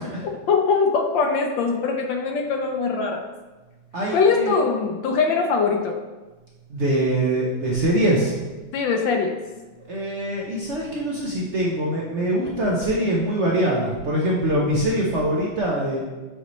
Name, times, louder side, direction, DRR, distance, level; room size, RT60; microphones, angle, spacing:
voice 1, 0.2-3.3 4.1-6.0 8.7-9.4, left 5 dB, 75° left, 3 dB, 1.2 m, -22 dB
voice 2, 3.9-4.5 6.7-8.3 9.9-16.0, right 1 dB, 70° right, -4 dB, 0.6 m, -23 dB
7.8 x 4.0 x 3.1 m, 1.2 s
omnidirectional pair, 2.2 m